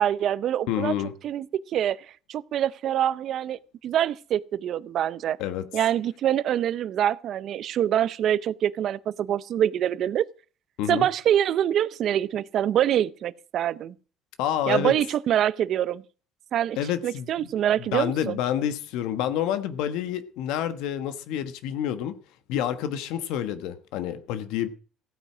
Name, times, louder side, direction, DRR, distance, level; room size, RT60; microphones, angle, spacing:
voice 1, 0.0-0.9 1.2-1.5 1.7-5.4 5.7-10.3 10.9-13.9 14.7-16.0 16.5-16.8 17.0-18.4, right 10 dB, 45° right, 0.6 m, -25 dB
voice 2, 0.7-1.1 5.4-5.6 10.8-11.1 14.4-14.9 16.8-17.3 17.9-22.1 22.5-24.7, left 10 dB, 80° left, 1.3 m, -28 dB
15.5 x 9.2 x 6.1 m
cardioid pair, 165°, 0 cm